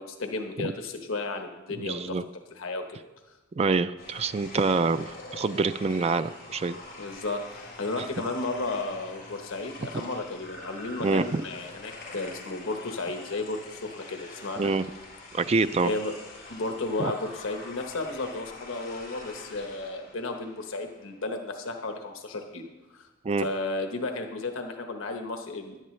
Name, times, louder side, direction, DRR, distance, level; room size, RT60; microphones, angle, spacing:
voice 1, 0.0-2.2 2.5-3.3 7.0-14.7 15.8-16.1 16.5-23.1 23.4-25.8, left 2 dB, 80° left, 4 dB, 1.1 m, -33 dB
voice 2, 1.8-2.2 3.6-6.8 11.0-11.4 14.6-14.9 15.3-15.9 17.0-17.1 23.2-23.5, right 4 dB, 30° right, 12 dB, 0.3 m, -26 dB
sound 1, 4.0-21.3, left 2 dB, 45° left, 3.9 m, -45 dB
16.5 x 11.0 x 3.2 m, 1.1 s
head